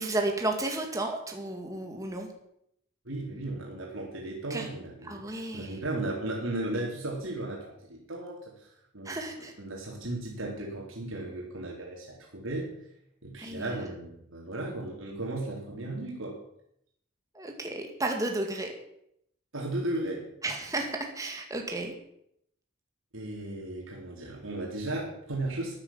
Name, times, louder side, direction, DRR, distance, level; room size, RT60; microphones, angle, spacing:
voice 1, 0.0-2.3 4.5-4.7 5.0-5.8 9.0-9.5 13.4-13.7 17.3-18.7 20.4-21.9, right 2 dB, 15° right, 2 dB, 2.1 m, -33 dB
voice 2, 3.1-8.7 8.9-9.2 9.6-12.7 13.2-16.4 19.5-20.3 23.1-25.7, right 2 dB, 80° right, -2 dB, 3.7 m, -35 dB
14.0 x 9.7 x 7.4 m, 0.74 s
head